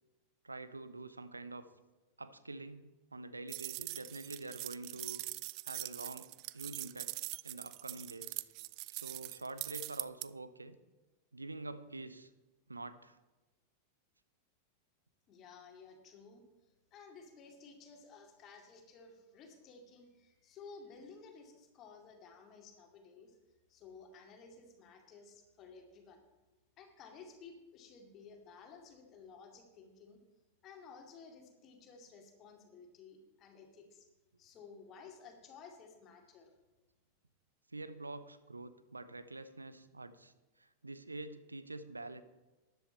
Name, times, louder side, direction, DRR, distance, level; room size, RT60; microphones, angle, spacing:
voice 1, 0.4-1.7 2.2-5.2 5.6-8.4 8.9-10.8 11.3-12.3 12.7-13.2 37.7-42.2, right 2 dB, 80° right, 13 dB, 0.7 m, -46 dB
sound 1, 3.5-10.3, right 22 dB, 45° right, 0.3 m, -43 dB
voice 2, 15.3-23.4 23.7-26.2 26.8-30.2 30.6-34.1 34.4-36.5, left 5 dB, 35° left, 3 dB, 2.3 m, -55 dB
12.5 x 10.5 x 4.3 m, 1.1 s
figure-of-eight pair, 90°, 0 cm